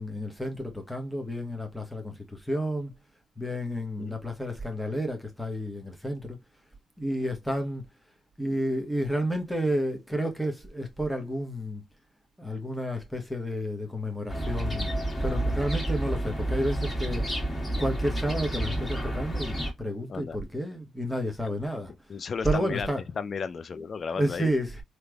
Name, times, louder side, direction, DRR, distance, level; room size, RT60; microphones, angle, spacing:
voice 1, 0.0-2.9 3.4-6.4 7.0-7.8 8.4-11.8 12.4-14.9 15.2-17.3 17.8-21.9 22.4-23.0 24.2-24.8, equal, 5° left, 1.2 m, -31 dB
sound 1, 14.3-19.7, right 1 dB, 20° left, 2.0 m, -30 dB
voice 2, 22.1-22.9 23.2-24.5, left 5 dB, 50° left, 0.5 m, -34 dB
3.3 x 3.0 x 2.3 m
supercardioid pair, 55°, 0 cm